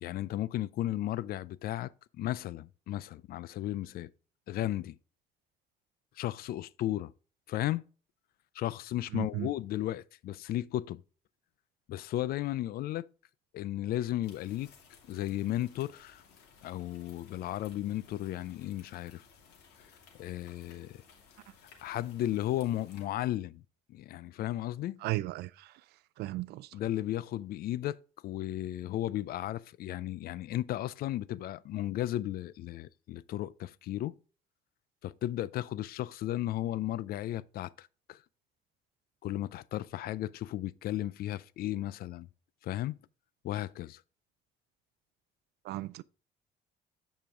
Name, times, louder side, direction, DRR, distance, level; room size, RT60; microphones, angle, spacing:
voice 1, 0.0-4.1 4.5-5.0 6.2-7.1 7.5-7.8 8.5-11.0 11.9-13.1 13.5-14.7 15.1-16.2 16.6-19.2 20.2-21.0 21.8-23.6 23.9-25.0 26.7-28.0 28.2-34.2 35.0-38.2 39.2-42.3 42.6-43.0 43.4-44.0, left 13 dB, 65° left, 0.4 m, -34 dB
voice 2, 9.1-9.5 25.0-25.7 26.2-26.7 45.6-46.0, right 17 dB, 75° right, 0.4 m, -35 dB
sound 1, 14.2-23.1, left 6 dB, 85° left, 2.6 m, -59 dB
9.2 x 5.1 x 3.6 m
cardioid pair, 110°, 17 cm